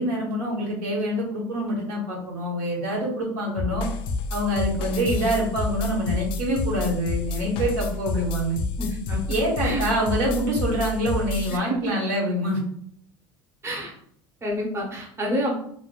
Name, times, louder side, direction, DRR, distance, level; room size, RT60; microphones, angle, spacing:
voice 1, 0.0-3.9 4.3-8.6 9.3-12.6 15.2-15.3, equal, 75° right, -4 dB, 1.3 m, -26 dB
sound 1, 3.6-11.6, left 3 dB, 60° left, 0.4 m, -29 dB
voice 2, 8.8-9.2 9.6-9.9 11.5-11.8 13.6-13.9 14.4-15.6, equal, 25° right, -2 dB, 0.9 m, -28 dB
3.3 x 2.2 x 2.5 m, 0.67 s
supercardioid pair, 85°, 10 cm